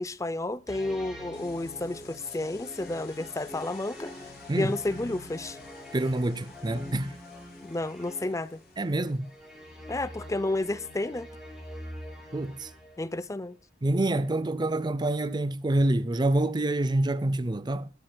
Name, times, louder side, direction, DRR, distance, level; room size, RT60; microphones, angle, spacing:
voice 1, 0.0-4.1 4.6-5.6 7.6-8.6 9.9-11.3 13.0-13.6, left 2 dB, 20° left, 0.6 m, -31 dB
sound 1, 0.7-13.2, left 1 dB, 5° right, 6.2 m, -45 dB
sound 2, 1.3-9.5, left 6 dB, 55° left, 4.6 m, -55 dB
voice 2, 5.9-7.1 8.8-9.3 12.3-12.7 13.8-17.9, right 1 dB, 25° right, 0.6 m, -27 dB
22.0 x 13.0 x 2.3 m
head